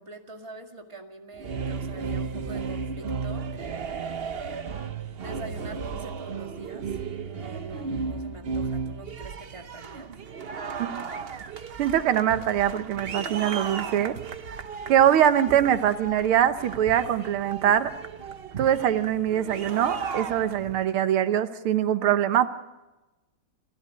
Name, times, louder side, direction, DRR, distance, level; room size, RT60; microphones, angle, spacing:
voice 1, 0.0-4.3 5.2-10.1, right 2 dB, 15° right, 3 dB, 1.9 m, -44 dB
sound 1, 1.3-20.9, right 5 dB, 55° right, 0.6 m, -35 dB
voice 2, 11.8-14.2 14.9-17.9 18.6-22.5, right 10 dB, 85° right, 11 dB, 1.9 m, -23 dB
28.5 x 14.0 x 9.5 m, 1.1 s
omnidirectional pair, 2.3 m